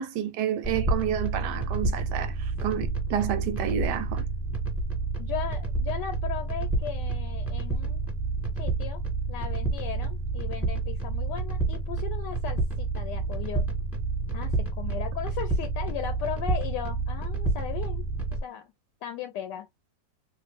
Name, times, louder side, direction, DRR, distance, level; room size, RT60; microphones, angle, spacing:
voice 1, 0.0-4.2, right 9 dB, 75° right, 1.2 m, -30 dB
sound 1, 0.6-18.4, right 3 dB, ahead, 1.4 m, -29 dB
voice 2, 5.2-8.1 8.6-9.0 9.3-13.7 14.3-18.1 18.4-18.7 19.0-19.7, left 9 dB, 80° left, 1.2 m, -37 dB
3.1 x 2.6 x 3.3 m
omnidirectional pair, 2.0 m